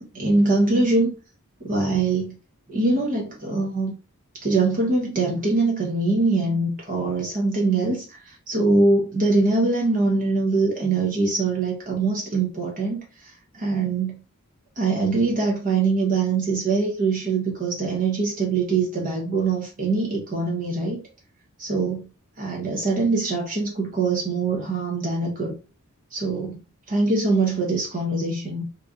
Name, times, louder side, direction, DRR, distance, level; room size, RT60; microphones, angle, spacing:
voice 1, 0.1-1.2 1.6-2.4 2.7-3.9 4.4-14.2 14.8-21.0 21.6-22.1 22.4-25.5 26.1-26.6 26.9-28.7, right 3 dB, 40° right, 0.9 m, -23 dB
3.1 x 2.7 x 3.5 m
head